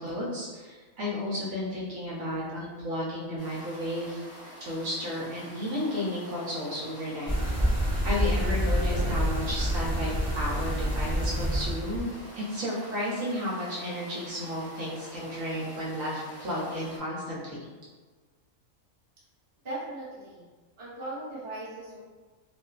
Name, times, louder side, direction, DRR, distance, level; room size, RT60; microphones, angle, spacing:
voice 1, 0.0-4.2 4.6-7.6 8.0-12.1 12.3-17.6, left 1 dB, 70° right, -6 dB, 0.9 m, -33 dB
sound 1, 3.4-17.0, equal, 50° left, 0.7 m, -47 dB
sound 2, 7.3-12.1, equal, 10° right, 0.4 m, -27 dB
voice 2, 19.6-20.5 20.8-22.0, right 2 dB, 25° right, -9 dB, 0.7 m, -38 dB
2.4 x 2.3 x 2.2 m, 1.4 s
omnidirectional pair, 1.5 m